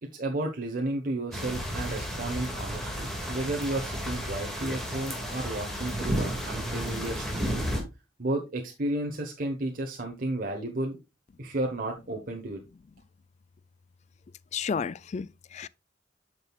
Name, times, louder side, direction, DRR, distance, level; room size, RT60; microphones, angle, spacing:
voice 1, 0.0-7.5 8.2-11.0 11.4-12.6, right 1 dB, 50° right, 1.1 m, -32 dB
sound 1, 1.3-7.8, equal, ahead, 2.1 m, -32 dB
voice 2, 14.5-15.7, left 6 dB, 40° left, 0.3 m, -32 dB
8.8 x 6.3 x 2.3 m
head